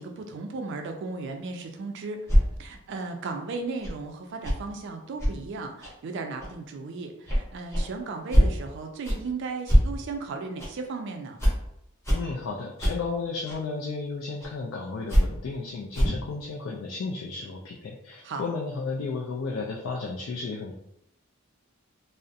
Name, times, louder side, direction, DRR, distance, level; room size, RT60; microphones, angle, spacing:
voice 1, 0.0-2.2 2.6-11.4 18.2-18.4, right 3 dB, 55° right, 5 dB, 0.3 m, -35 dB
sound 1, 2.3-2.4 3.8-3.9 4.4-4.6 5.2-5.3 5.8-5.9 6.4-6.5 7.2-7.4 7.7-7.9 8.3-8.5 9.0-9.2 9.7-9.8 10.6-10.7 11.4-11.5 12.0-12.2 12.8-12.9 13.4-13.6 14.4-14.5 15.1-15.2 15.9-16.2, equal, 10° left, 0.7 m, -21 dB
voice 2, 12.1-20.7, left 4 dB, 60° left, -2 dB, 0.3 m, -33 dB
2.3 x 2.0 x 2.6 m, 0.79 s
head